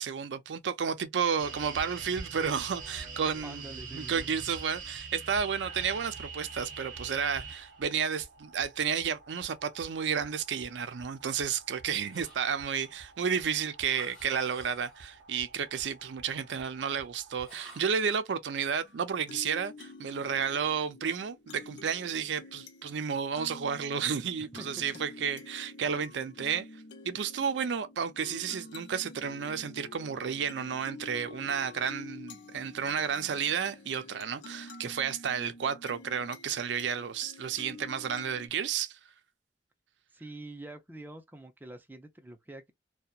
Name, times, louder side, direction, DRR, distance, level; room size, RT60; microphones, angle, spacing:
voice 1, 0.0-3.7 3.9-26.7 27.0-39.0, right 7 dB, 80° right, 0.4 m, -32 dB
sound 1, 1.4-17.5, right 4 dB, 50° right, 0.7 m, -46 dB
voice 2, 3.4-4.3 24.5-24.7 40.1-42.7, right 1 dB, 10° right, 0.5 m, -45 dB
sound 2, 12.1-12.9 13.8-15.1 17.4-18.1, equal, 5° left, 1.4 m, -52 dB
sound 3, 18.8-38.5, left 3 dB, 85° left, 0.7 m, -49 dB
2.8 x 2.2 x 2.3 m
head